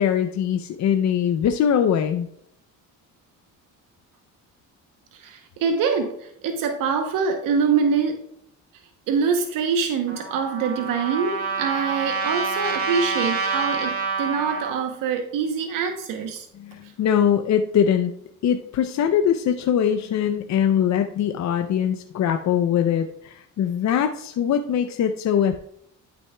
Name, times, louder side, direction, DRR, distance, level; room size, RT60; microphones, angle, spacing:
voice 1, 0.0-2.3 16.5-18.1 18.4-25.6, left 8 dB, 55° left, 6 dB, 0.6 m, -22 dB
voice 2, 5.1-8.2 9.1-16.5, right 6 dB, 80° right, 5 dB, 0.9 m, -24 dB
Trumpet, 10.1-14.8, right 4 dB, 45° right, 2.3 m, -27 dB
11.5 x 6.2 x 2.3 m, 0.73 s
cardioid pair, 95°, 32 cm